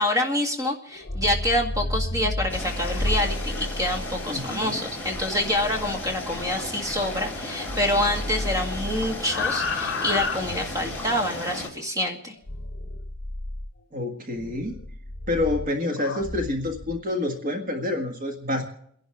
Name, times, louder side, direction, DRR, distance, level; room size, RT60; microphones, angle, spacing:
voice 1, 0.0-12.3, left 1 dB, 15° right, 2 dB, 2.0 m, -26 dB
sound 1, 0.9-7.4 7.7-11.1 12.5-13.7 14.4-17.0, left 2 dB, 55° left, 1.2 m, -32 dB
sound 2, 2.5-11.7, left 2 dB, 10° left, 3.6 m, -35 dB
voice 2, 4.3-4.8 13.9-14.8 15.3-18.6, left 2 dB, 35° right, 2 dB, 1.6 m, -28 dB
30.0 x 11.5 x 3.5 m, 0.67 s
head